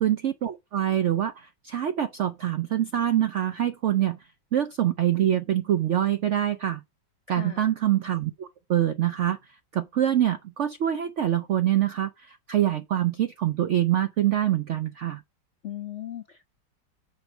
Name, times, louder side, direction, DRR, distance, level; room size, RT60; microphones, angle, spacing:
voice 1, 0.0-4.2 4.5-6.8 7.3-9.4 9.7-15.2, right 11 dB, 80° right, 0.6 m, -25 dB
voice 2, 7.3-7.7 15.6-16.4, left 11 dB, 60° left, 0.7 m, -37 dB
7.1 x 4.5 x 5.9 m
omnidirectional pair, 1.9 m